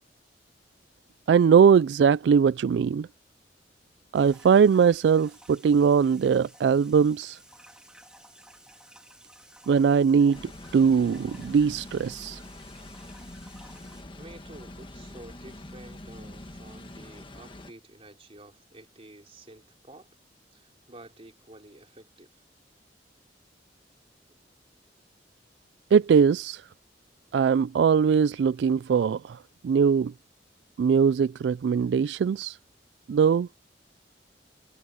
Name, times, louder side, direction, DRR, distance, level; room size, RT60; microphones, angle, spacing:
voice 1, 1.3-3.1 4.1-7.4 9.7-10.4 10.7-12.4 25.9-26.6 27.3-29.4 29.6-30.1 30.8-32.6 33.1-33.5, right 6 dB, 70° right, 0.3 m, -21 dB
sound 1, 4.1-14.0, right 1 dB, 5° right, 2.5 m, -54 dB
sound 2, 10.3-17.7, left 1 dB, 30° left, 1.5 m, -44 dB
voice 2, 14.2-20.1 20.5-22.3, right 1 dB, 35° right, 3.5 m, -50 dB
head